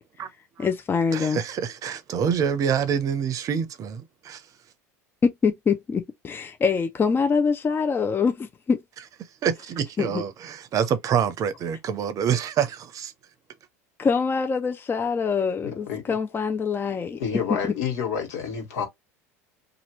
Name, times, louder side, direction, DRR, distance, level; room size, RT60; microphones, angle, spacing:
voice 1, 0.6-1.4 5.2-8.8 10.0-10.2 14.0-17.2 17.6-17.7, left 5 dB, 25° left, 0.6 m, -24 dB
voice 2, 1.1-4.4 9.4-13.1, right 8 dB, 45° right, 0.7 m, -26 dB
voice 3, 15.6-16.2 17.2-18.9, left 7 dB, 75° left, 1.7 m, -29 dB
2.8 x 2.5 x 3.0 m
hypercardioid pair, 80°, 8 cm